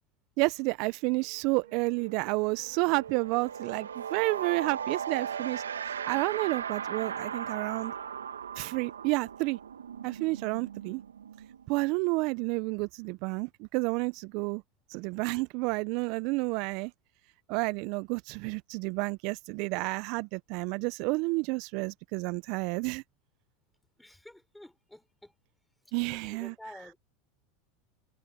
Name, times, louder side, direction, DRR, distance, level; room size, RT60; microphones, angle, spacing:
voice 1, 0.4-7.9 8.6-9.6 10.0-11.0 11.7-14.6 14.9-16.9 17.5-23.0 25.9-26.5, right 27 dB, 55° right, 0.9 m, -30 dB
sound 1, 1.2-1.4 1.7-12.2, right 8 dB, 85° right, 2.8 m, -38 dB
voice 2, 24.0-25.3 26.1-27.0, left 1 dB, 5° left, 6.5 m, -50 dB
hypercardioid pair, 85°, 0 cm